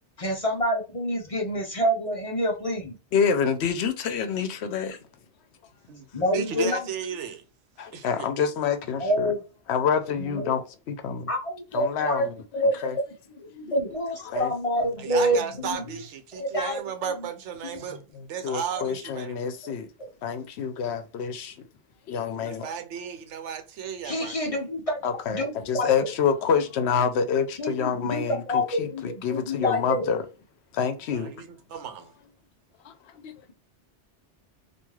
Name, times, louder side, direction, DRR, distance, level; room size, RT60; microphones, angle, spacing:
voice 1, 0.2-3.0 6.1-6.8 9.0-9.4 10.2-10.6 11.3-12.3 12.5-13.0 13.4-15.8 16.3-16.8 19.6-19.7 20.0-20.1 24.0-25.0 25.3-26.1 27.6-30.1, equal, 40° left, 0.5 m, -27 dB
voice 2, 3.1-5.0 7.8-9.3 9.7-11.3 11.7-12.3 12.8-13.0 13.7-13.8 14.2-14.5 17.9-19.9 20.2-21.7 22.1-22.7 25.0-30.2 30.7-31.3 32.8-33.3, left 7 dB, 70° left, 0.8 m, -27 dB
voice 3, 5.9-7.4 7.9-8.3 15.0-19.5 22.3-24.6 31.1-32.1, right 8 dB, 85° right, 1.0 m, -35 dB
3.1 x 2.5 x 2.2 m
omnidirectional pair, 1.2 m